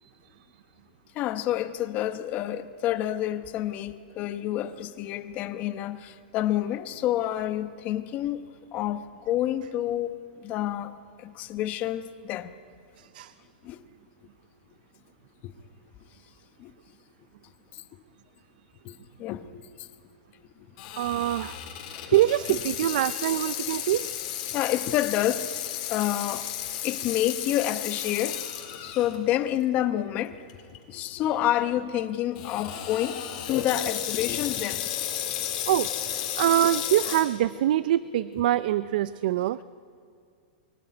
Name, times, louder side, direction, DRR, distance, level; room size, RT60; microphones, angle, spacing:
voice 1, 1.1-8.4 8.7-10.9 11.2-12.5 13.6-13.9 15.4-15.5 16.6-16.7 17.7-18.0 18.8-19.9 21.9-22.2 24.5-25.5 25.9-26.5 26.8-28.4 28.8-30.4 30.9-34.9, left 12 dB, 30° left, 1.0 m, -29 dB
voice 2, 13.0-13.3 21.0-21.6 22.0-24.2 35.7-39.6, right 13 dB, 60° right, 0.5 m, -25 dB
Water tap faucet / Sink (filling or washing), 20.8-29.2 29.6-29.7 30.5-30.8 32.3-37.2, left 11 dB, 45° left, 3.7 m, -33 dB
23.0 x 16.0 x 9.3 m
hypercardioid pair, 155°, 5 cm